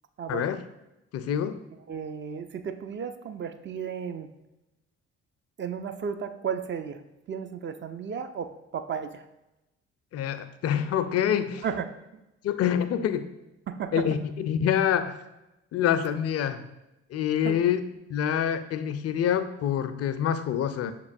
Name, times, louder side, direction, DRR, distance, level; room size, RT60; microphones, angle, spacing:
voice 1, 1.1-1.6 10.1-11.6 12.4-13.3 13.9-15.2 15.7-16.6 17.1-17.8 18.1-20.9, left 9 dB, 45° left, 11 dB, 0.4 m, -26 dB
voice 2, 1.9-4.3 5.6-7.0 7.3-9.2 11.6-11.9 12.1-12.2 13.7-14.0 17.4-17.6, right 7 dB, 35° right, 9 dB, 0.4 m, -34 dB
6.3 x 2.9 x 2.5 m, 0.94 s
hypercardioid pair, 45°, 34 cm